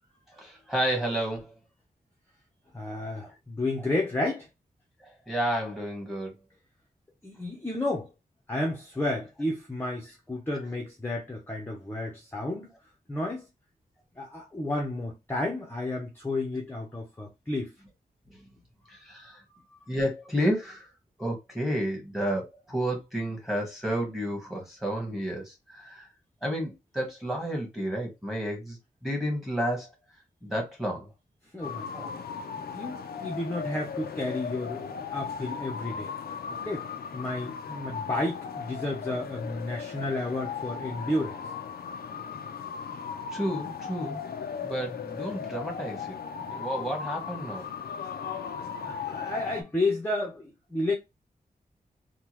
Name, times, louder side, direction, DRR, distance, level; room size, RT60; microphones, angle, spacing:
voice 1, 0.3-1.6 5.0-6.3 18.3-18.4 18.9-19.4 19.9-20.9 21.2-26.1 26.4-29.9 30.4-31.1 31.9-32.1 43.3-44.2 44.6-46.2 46.5-47.7, equal, ahead, 1.5 m, -31 dB
voice 2, 2.7-4.5 7.2-8.1 8.5-12.7 13.1-13.4 14.2-17.7 31.5-32.1 32.7-36.1 36.6-36.9 37.1-41.4 48.8-50.9, left 2 dB, 15° left, 0.8 m, -32 dB
sound 1, 31.6-49.6, left 7 dB, 85° left, 0.5 m, -37 dB
3.6 x 2.3 x 3.0 m
wide cardioid pair, 110°, 16 cm